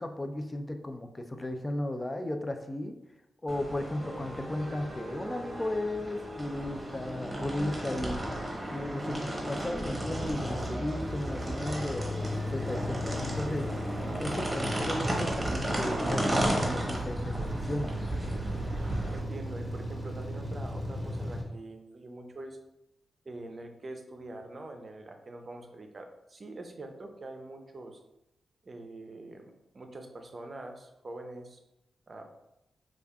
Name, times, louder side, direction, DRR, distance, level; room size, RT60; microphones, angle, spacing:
voice 1, 0.0-2.9 3.4-8.2 8.7-13.7 14.2-18.0, left 1 dB, 30° left, 7 dB, 0.4 m, -35 dB
sound 1, 3.5-19.2, right 1 dB, 20° right, 0.9 m, -34 dB
sound 2, 9.8-21.4, equal, ahead, 1.1 m, -37 dB
voice 2, 19.1-22.6 23.2-28.0 28.6-31.6 32.1-32.3, right 2 dB, 45° right, 4 dB, 0.5 m, -44 dB
4.9 x 2.4 x 2.3 m, 0.87 s
cardioid pair, 55°, 0 cm